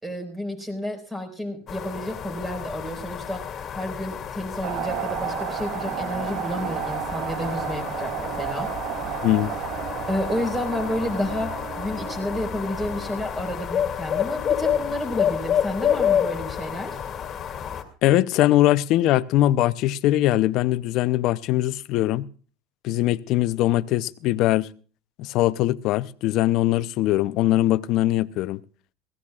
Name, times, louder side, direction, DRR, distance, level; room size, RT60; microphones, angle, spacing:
voice 1, 0.0-3.4 3.7-8.7 10.1-17.0, left 1 dB, 10° right, 4.9 m, -30 dB
sound 1, 1.7-17.8, left 9 dB, 35° left, 2.3 m, -29 dB
sound 2, 4.6-13.6, right 12 dB, 60° right, 0.6 m, -33 dB
voice 2, 18.0-22.3 22.8-24.7 25.2-28.6, left 15 dB, 60° left, 0.6 m, -21 dB
21.0 x 16.0 x 2.4 m
supercardioid pair, 110°, 0 cm